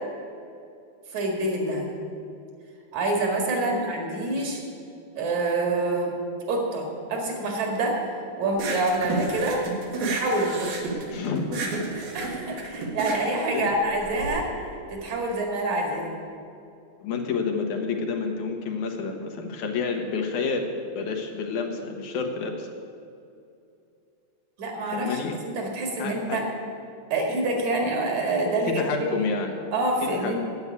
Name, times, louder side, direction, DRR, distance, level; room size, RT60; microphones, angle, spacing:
voice 1, 1.1-1.9 2.9-4.6 5.2-6.2 6.5-8.0 8.4-9.6 10.1-10.7 11.9-14.5 14.9-16.1 24.6-26.5 27.1-29.2 29.7-30.4, right 2 dB, 70° right, 0 dB, 3.4 m, -26 dB
sound 1, 8.5-14.3, right 3 dB, 90° right, 3.1 m, -31 dB
voice 2, 11.1-11.7 13.5-13.7 17.0-20.7 21.0-22.7 24.9-25.4 26.0-26.4 28.6-29.6 30.1-30.3, left 5 dB, 90° left, 3 dB, 2.7 m, -29 dB
9.7 x 8.4 x 9.6 m, 2.6 s
omnidirectional pair, 3.3 m